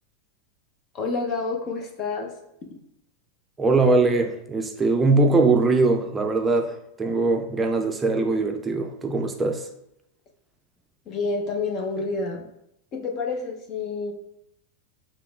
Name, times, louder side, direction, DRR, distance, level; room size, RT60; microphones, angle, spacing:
voice 1, 0.9-2.3 11.1-12.5 12.9-14.1, left 3 dB, 40° left, 3 dB, 0.8 m, -28 dB
voice 2, 3.6-9.7, right 3 dB, 20° right, 4 dB, 0.4 m, -21 dB
4.7 x 3.0 x 2.4 m, 0.80 s
hypercardioid pair, 110°, 0 cm